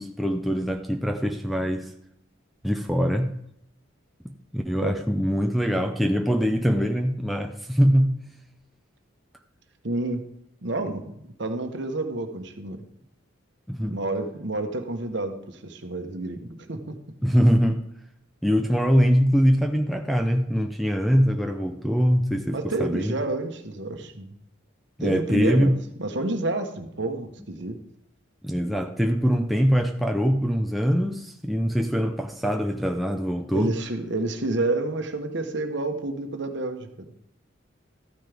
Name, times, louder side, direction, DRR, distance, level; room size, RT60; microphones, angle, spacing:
voice 1, 0.0-1.9 2.6-3.3 4.2-8.2 13.7-14.0 17.2-17.8 18.4-23.1 25.0-25.8 28.4-33.7, equal, ahead, 3 dB, 0.6 m, -23 dB
voice 2, 9.8-10.2 10.6-12.8 13.8-17.0 22.5-24.3 25.0-27.8 33.5-37.1, right 2 dB, 55° right, 6 dB, 1.2 m, -29 dB
13.5 x 9.5 x 3.5 m, 0.75 s
head